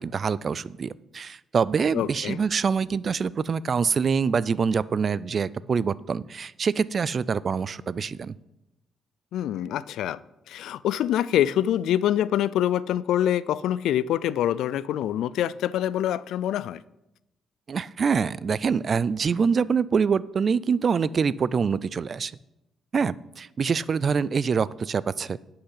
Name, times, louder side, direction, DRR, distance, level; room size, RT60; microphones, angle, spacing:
voice 1, 0.0-8.4 17.7-22.3 22.9-25.4, right 6 dB, 45° right, 0.3 m, -25 dB
voice 2, 1.9-2.4 9.3-10.2 10.5-16.8, left 11 dB, 80° left, 0.3 m, -25 dB
10.0 x 5.7 x 5.7 m
cardioid pair, 90°, 0 cm